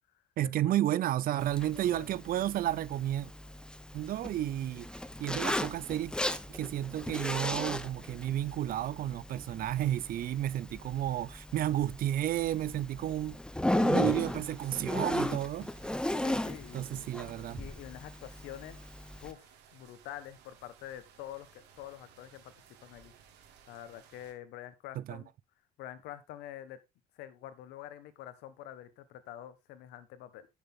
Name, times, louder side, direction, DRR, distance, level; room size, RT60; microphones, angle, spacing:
voice 1, 0.4-3.3 3.9-4.9 5.2-6.1 6.5-13.4 13.8-15.7 16.7-17.6 25.1-25.2, right 12 dB, 60° right, 0.6 m, -32 dB
Zipper (clothing), 1.4-19.3, left 1 dB, 5° left, 0.8 m, -36 dB
voice 2, 1.7-2.2 3.8-3.9 13.6-14.2 16.2-17.1 17.6-18.8 19.2-22.5 22.8-23.1 23.7-25.3 25.8-26.8 27.1-30.5, left 12 dB, 90° left, 1.4 m, -46 dB
sound 1, 14.0-24.3, right 7 dB, 90° right, 2.6 m, -59 dB
11.0 x 6.9 x 3.7 m
cardioid pair, 110°, 17 cm